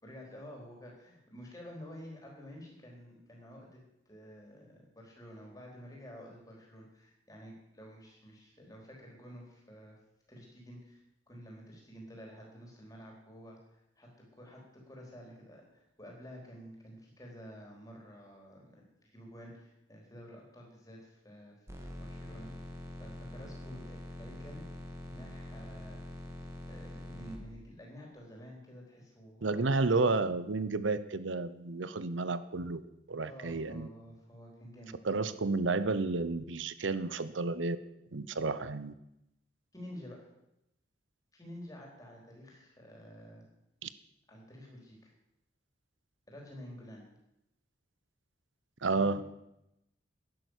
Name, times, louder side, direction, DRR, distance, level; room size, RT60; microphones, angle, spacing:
voice 1, 0.0-10.0 10.3-22.5 23.0-24.6 25.1-26.0 26.7-29.8 33.2-35.0 39.7-40.2 41.3-43.5 44.3-45.1 46.3-47.0 48.9-49.2, equal, 20° left, -1 dB, 4.2 m, -50 dB
sound 1, 21.7-27.4, left 1 dB, 15° right, 1.9 m, -44 dB
voice 2, 29.4-32.8 33.1-33.9 35.0-37.8 38.1-38.9 43.8-43.9 48.8-49.2, right 3 dB, 85° right, 14 dB, 0.8 m, -31 dB
11.5 x 10.5 x 8.2 m, 0.85 s
head